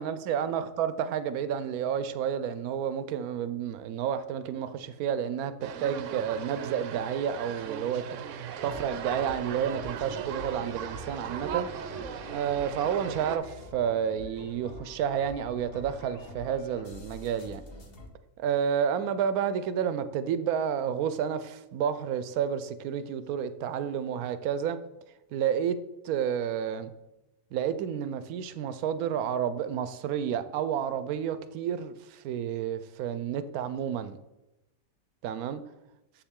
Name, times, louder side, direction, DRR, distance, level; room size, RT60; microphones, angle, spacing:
voice 1, 0.0-8.0 8.6-11.7 12.3-17.6 18.4-24.8 25.3-25.8 26.0-26.9 27.5-34.2 35.2-35.6, right 8 dB, 90° right, 1.1 m, -30 dB
sound 1, 5.6-13.4, right 8 dB, 70° right, 0.8 m, -38 dB
sound 2, 8.5-18.1, left 2 dB, 45° left, 1.0 m, -46 dB
7.1 x 7.0 x 3.6 m
omnidirectional pair, 1.5 m